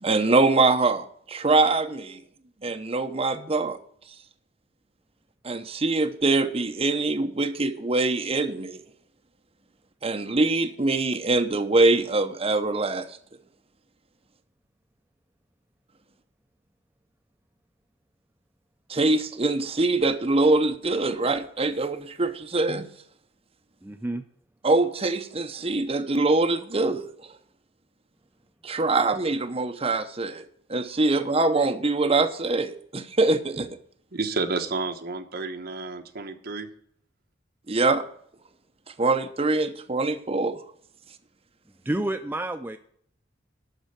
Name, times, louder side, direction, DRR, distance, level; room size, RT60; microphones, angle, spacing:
voice 1, 0.0-2.2 2.6-3.8 5.4-8.8 10.0-13.1 18.9-22.8 24.6-27.1 28.6-30.4 30.7-33.7 37.7-38.0 39.0-40.6, right 3 dB, 30° right, 6 dB, 0.8 m, -23 dB
voice 2, 23.8-24.2 41.8-42.8, right 1 dB, 10° right, 6 dB, 0.4 m, -29 dB
voice 3, 34.1-36.7, right 3 dB, 55° right, 6 dB, 1.1 m, -30 dB
12.5 x 4.4 x 8.1 m, 0.64 s
head